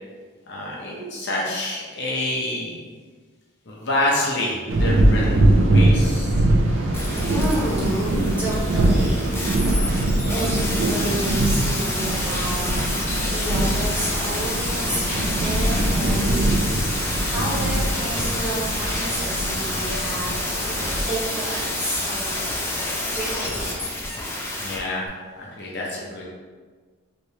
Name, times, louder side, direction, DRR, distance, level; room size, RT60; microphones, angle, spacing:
voice 1, 0.5-2.8 3.7-6.3 24.6-25.1 25.4-26.2, left 1 dB, 55° left, -3 dB, 0.6 m, -27 dB
sound 1, 4.7-21.0, right 1 dB, 65° right, 0.4 m, -22 dB
voice 2, 6.6-9.4 10.2-16.4 17.2-20.3 21.1-22.5 23.0-23.9 25.6-25.8, right 1 dB, 5° right, -9 dB, 0.8 m, -31 dB
sound 2, 6.9-24.8 25.1-25.2, left 1 dB, 10° left, 0.3 m, -28 dB
sound 3, 11.8-15.0 15.6-18.9 19.4-22.6, left 1 dB, 35° right, 1.1 m, -43 dB
3.2 x 3.1 x 2.8 m, 1.5 s
head